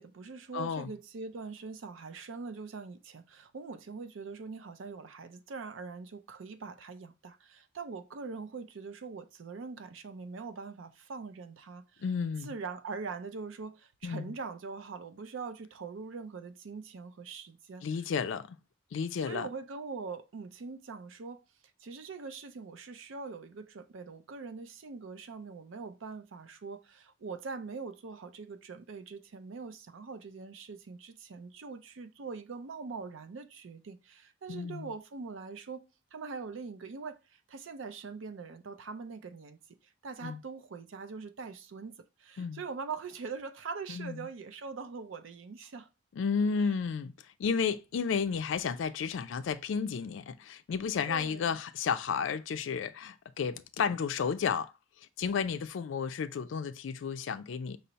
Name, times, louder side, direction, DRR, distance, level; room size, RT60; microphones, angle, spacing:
voice 1, 0.0-12.0 12.4-18.0 19.2-21.4 21.8-35.8 36.1-45.9 46.6-46.7 51.1-51.6, right 4 dB, 70° right, 0.5 m, -43 dB
voice 2, 0.5-0.9 12.0-12.5 14.0-14.3 17.8-18.6 18.9-19.5 34.5-34.9 40.2-40.4 42.4-42.6 43.9-44.3 46.1-47.1 47.4-54.7 55.2-57.8, left 6 dB, 65° left, 0.3 m, -32 dB
5.5 x 2.0 x 3.9 m
head